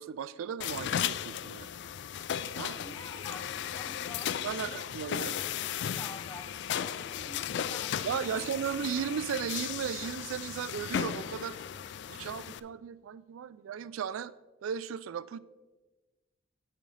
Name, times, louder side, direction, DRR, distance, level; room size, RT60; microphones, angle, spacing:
voice 1, 0.0-1.7 2.6-2.7 4.4-5.4 8.0-11.6 12.1-14.3 14.6-15.4, right 8 dB, 80° right, 0.3 m, -36 dB
sound 1, 0.6-12.6, left 9 dB, 55° left, 0.3 m, -36 dB
voice 2, 2.6-4.3 4.6-4.8 5.1-8.7, left 2 dB, 15° left, 0.7 m, -48 dB
9.2 x 8.5 x 3.2 m
head